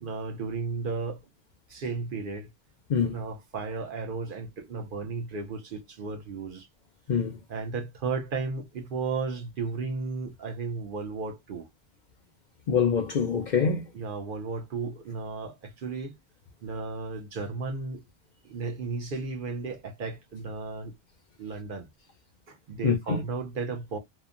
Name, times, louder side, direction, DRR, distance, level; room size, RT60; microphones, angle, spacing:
voice 1, 0.0-1.2 1.7-2.5 3.0-6.7 7.5-11.7 13.9-16.2 16.6-18.0 18.4-20.9 21.4-21.9 22.5-24.0, right 4 dB, 60° right, 0.7 m, -34 dB
voice 2, 12.7-13.8 22.8-23.2, left 6 dB, 55° left, 0.5 m, -25 dB
2.9 x 2.1 x 2.4 m
omnidirectional pair, 1.1 m